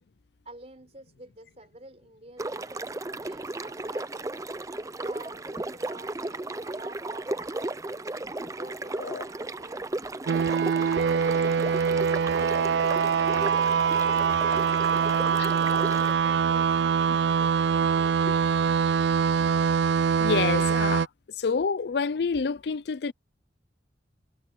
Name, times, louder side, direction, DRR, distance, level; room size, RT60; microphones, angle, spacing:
voice 1, 0.4-4.4 5.0-7.8 8.4-9.9 14.8-18.7, right 2 dB, 35° right, 4.1 m, -49 dB
sound 1, 2.4-16.1, right 2 dB, 20° right, 0.6 m, -35 dB
sound 2, 5.3-6.2 6.6-6.9 7.4-7.8 8.2-8.7 9.4-10.2, equal, 10° left, 2.0 m, -51 dB
sound 3, 10.3-21.1, right 6 dB, 70° right, 0.4 m, -24 dB
voice 2, 20.2-21.1 21.4-23.1, left 5 dB, 65° left, 0.5 m, -28 dB
head